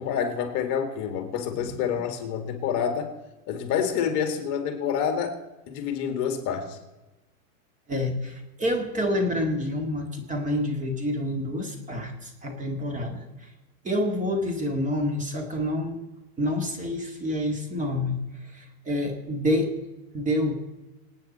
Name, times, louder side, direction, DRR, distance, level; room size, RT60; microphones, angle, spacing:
voice 1, 0.0-3.1 3.5-5.4 5.7-6.8, left 7 dB, 40° left, 6 dB, 2.1 m, -28 dB
voice 2, 7.9-13.3 13.8-16.0 16.4-18.2 18.5-19.8 20.1-20.5, left 1 dB, 15° right, 3 dB, 2.1 m, -28 dB
27.0 x 9.2 x 4.3 m, 1.1 s
supercardioid pair, 140°, 45 cm